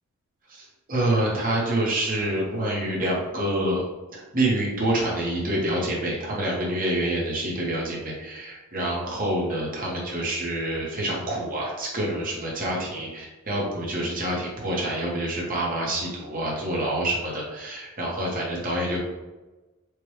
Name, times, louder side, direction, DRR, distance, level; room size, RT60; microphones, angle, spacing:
voice 1, 0.5-3.8 4.1-19.0, right 1 dB, 40° right, -4 dB, 1.2 m, -27 dB
4.6 x 2.5 x 3.2 m, 1.1 s
head